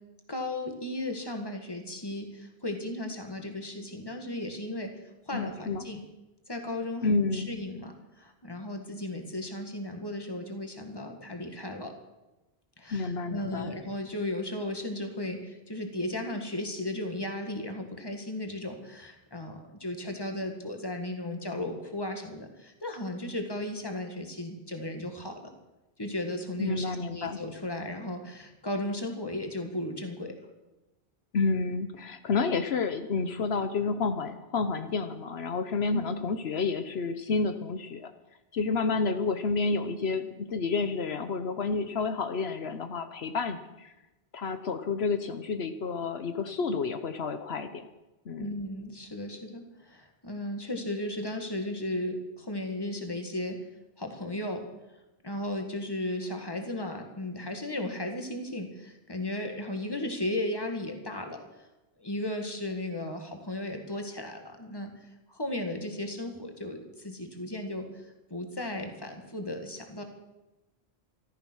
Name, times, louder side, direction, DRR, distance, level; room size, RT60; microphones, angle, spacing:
voice 1, 0.3-4.9 5.3-6.0 6.5-11.9 12.8-25.5 26.0-30.3 35.9-36.0 48.4-53.6 54.0-54.6 55.2-61.4 62.0-67.8 68.3-70.0, left 1 dB, 20° left, 4 dB, 2.0 m, -35 dB
voice 2, 5.3-5.8 7.0-7.5 12.9-13.7 26.6-27.4 31.3-38.1 38.5-43.9 44.3-47.9 48.3-48.6, left 4 dB, 75° left, 9 dB, 1.1 m, -30 dB
14.0 x 14.0 x 6.3 m, 1.0 s
omnidirectional pair, 1.1 m